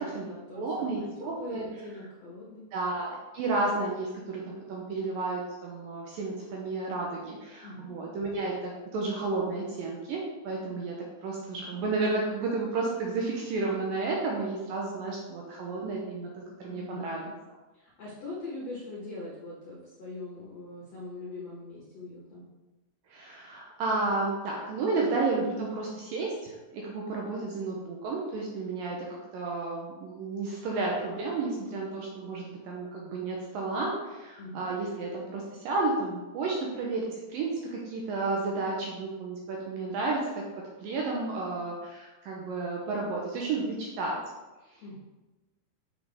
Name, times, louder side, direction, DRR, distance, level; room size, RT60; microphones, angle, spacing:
voice 1, 0.0-2.7 7.6-7.9 16.6-17.3 17.7-22.4 34.4-34.7 44.8-45.0, left 2 dB, 60° left, -5 dB, 1.8 m, -42 dB
voice 2, 0.5-1.7 2.7-11.0 11.2-17.3 23.1-40.4 40.8-44.2, right 3 dB, 75° right, -2 dB, 2.2 m, -32 dB
7.4 x 6.7 x 3.5 m, 1.2 s
omnidirectional pair, 4.9 m